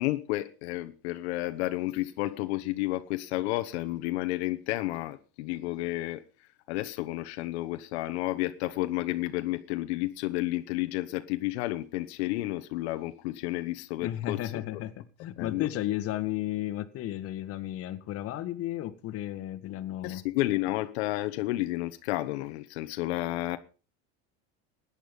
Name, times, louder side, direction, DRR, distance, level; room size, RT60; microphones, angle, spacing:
voice 1, 0.0-6.2 6.7-14.8 15.4-15.7 20.0-23.6, left 17 dB, 90° left, 1.2 m, -31 dB
voice 2, 14.0-20.2, left 14 dB, 45° left, 1.7 m, -33 dB
17.0 x 10.0 x 5.4 m
cardioid pair, 140°, 32 cm